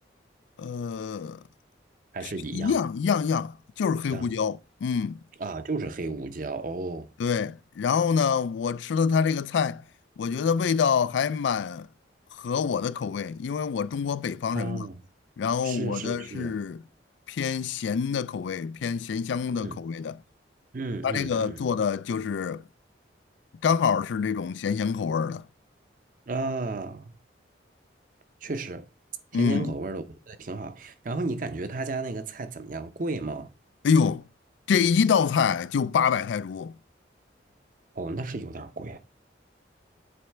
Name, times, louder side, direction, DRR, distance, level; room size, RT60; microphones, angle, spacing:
voice 1, 0.6-1.4 2.2-5.2 7.2-9.8 10.2-11.9 12.3-14.9 15.4-16.8 17.3-20.2 21.0-22.6 23.6-25.5 29.3-29.7 33.8-34.2 34.7-36.8, left 6 dB, 80° left, 0.3 m, -26 dB
voice 2, 2.1-2.8 4.1-4.3 5.4-7.1 14.5-15.0 15.6-16.5 19.6-19.8 20.7-21.6 26.3-27.2 28.4-28.9 29.3-33.5 38.0-39.0, right 3 dB, 45° right, 0.6 m, -33 dB
7.9 x 3.2 x 4.4 m
head